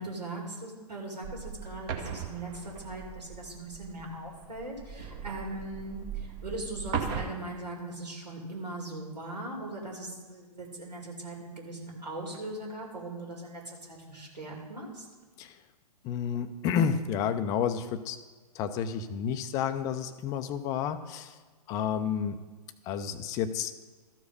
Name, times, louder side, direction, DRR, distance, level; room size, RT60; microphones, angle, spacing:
voice 1, 0.0-15.1, right 2 dB, 85° right, 0 dB, 2.7 m, -40 dB
sound 1, 1.2-7.2, right 6 dB, 30° right, 0.9 m, -38 dB
voice 2, 16.0-18.2 18.5-21.3 21.7-22.4 22.9-23.7, left 7 dB, 15° left, 10 dB, 0.4 m, -30 dB
13.0 x 4.8 x 5.4 m, 1.3 s
figure-of-eight pair, 125°, 21 cm